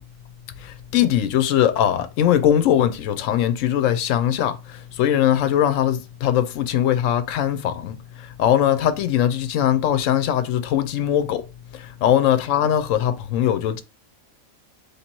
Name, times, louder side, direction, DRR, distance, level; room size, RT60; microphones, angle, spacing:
voice 1, 0.6-11.5 11.7-13.8, left 10 dB, 70° left, 0.9 m, -21 dB
3.3 x 2.9 x 4.4 m
omnidirectional pair, 1.4 m